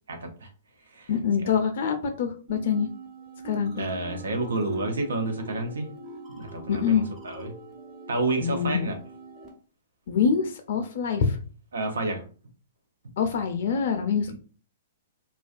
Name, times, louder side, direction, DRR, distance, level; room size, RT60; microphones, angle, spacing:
voice 1, 0.1-0.5 0.9-1.1 1.4-1.5 3.8-5.9 6.3-7.5 8.1-9.0 11.7-12.2 14.3-14.4, right 2 dB, 85° right, 5 dB, 0.6 m, -30 dB
voice 2, 1.1-2.9 3.4-3.9 6.7-7.1 8.4-9.0 10.1-11.4 13.2-14.4, left 6 dB, 60° left, 6 dB, 0.4 m, -25 dB
sound 1, 2.5-9.5, right 2 dB, 25° right, 1.0 m, -43 dB
2.3 x 2.2 x 2.5 m, 0.40 s
hypercardioid pair, 125°, 0 cm